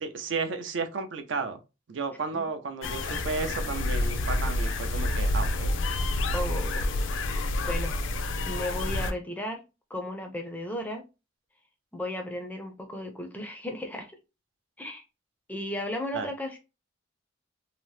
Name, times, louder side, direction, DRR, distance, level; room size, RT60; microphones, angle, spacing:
voice 1, 0.0-1.6 1.9-5.7 16.1-16.3, right 4 dB, 65° right, 0.4 m, -33 dB
sound 1, 2.8-9.1, left 2 dB, 70° left, 0.4 m, -28 dB
voice 2, 6.3-7.0 7.7-8.0 8.5-9.6 9.9-11.0 11.9-14.1 14.8-15.0 15.5-16.6, left 1 dB, 10° left, 0.4 m, -35 dB
2.8 x 2.0 x 3.1 m
head